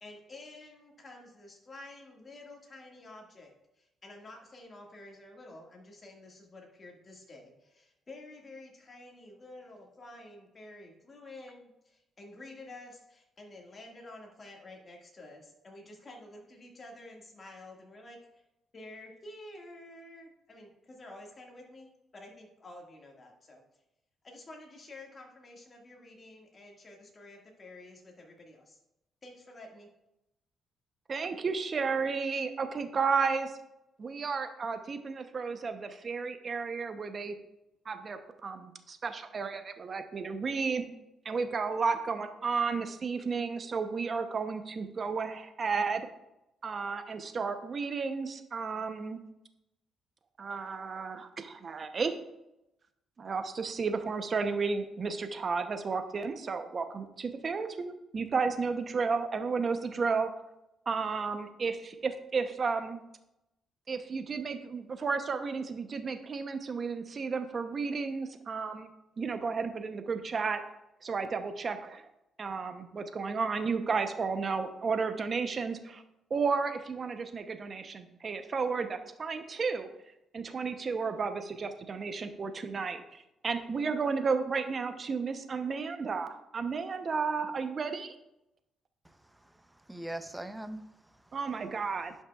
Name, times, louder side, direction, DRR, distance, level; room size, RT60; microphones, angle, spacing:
voice 1, 0.0-18.2 18.7-23.6 24.2-28.8 29.2-29.9, left 2 dB, 35° left, 1.8 m, -50 dB
voice 2, 31.1-33.5 34.0-37.4 37.9-40.9 41.2-46.0 46.6-49.2 50.4-52.2 53.2-60.3 60.9-63.0 63.9-68.9 69.2-70.6 71.0-72.0 72.4-76.0 76.3-79.9 80.3-88.1 91.3-92.1, right 5 dB, 40° right, 0.7 m, -33 dB
voice 3, 89.0-91.4, right 1 dB, 5° right, 0.6 m, -43 dB
10.5 x 5.6 x 2.3 m
cardioid pair, 90°, 0 cm